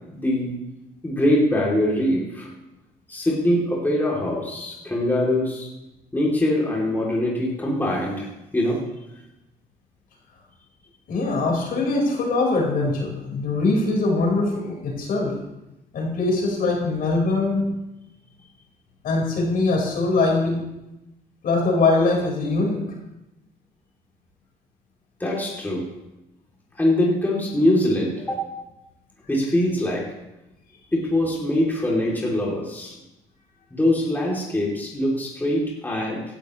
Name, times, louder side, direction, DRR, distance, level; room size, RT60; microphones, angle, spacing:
voice 1, 0.1-0.6 1.0-2.5 3.1-5.7 6.1-8.3 8.5-8.8 25.2-25.9 26.7-28.4 29.3-30.1 30.9-33.0 33.7-36.2, left 1 dB, 10° left, -4 dB, 3.1 m, -23 dB
voice 2, 11.1-15.3 15.9-17.7 19.0-20.6 21.4-22.8, left 3 dB, 60° left, -2 dB, 5.0 m, -22 dB
16.5 x 11.5 x 3.2 m, 0.94 s
cardioid pair, 110°, 17 cm